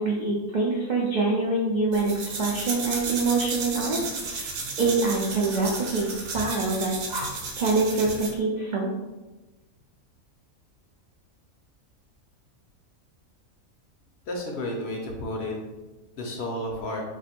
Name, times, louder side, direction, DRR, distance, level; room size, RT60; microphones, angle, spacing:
voice 1, 0.0-8.9, right 3 dB, 80° right, -3 dB, 0.4 m, -26 dB
sound 1, 1.9-8.4, right 3 dB, 65° right, 1.0 m, -33 dB
voice 2, 14.3-15.6 16.2-17.0, left 1 dB, 65° left, 0 dB, 0.7 m, -31 dB
2.5 x 2.5 x 4.2 m, 1.1 s
omnidirectional pair, 1.4 m